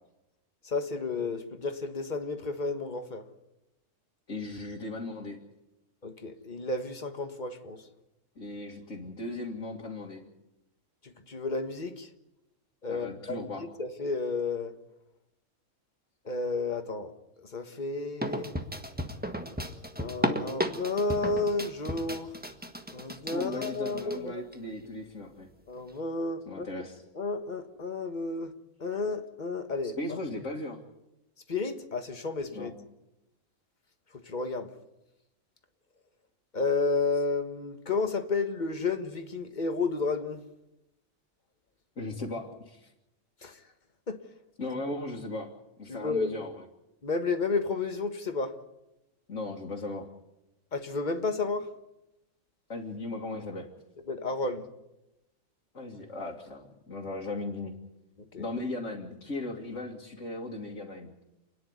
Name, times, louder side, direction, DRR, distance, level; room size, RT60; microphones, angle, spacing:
voice 1, 0.6-3.2 6.0-7.8 11.0-12.1 12.8-13.5 13.8-14.7 16.2-17.1 17.4-18.5 20.0-22.4 22.9-24.3 25.7-26.7 27.1-28.5 28.8-29.9 31.5-32.7 34.2-34.7 36.5-40.4 43.4-43.6 44.1-44.2 44.7-45.0 45.9-46.3 47.0-48.5 50.7-51.7 54.1-54.7 58.3-58.4, left 3 dB, 35° left, 1.6 m, -31 dB
voice 2, 4.3-5.4 8.4-10.2 12.9-13.7 23.1-25.5 26.5-27.0 30.0-30.8 32.5-32.7 42.0-42.9 44.6-45.5 45.8-46.6 49.3-50.1 52.7-53.7 55.7-57.7 58.4-61.1, left 2 dB, 65° left, 2.4 m, -37 dB
sound 1, 18.2-24.2 24.5-24.6 25.5-25.6, equal, 5° right, 1.4 m, -34 dB
29.0 x 10.5 x 9.6 m
omnidirectional pair, 1.4 m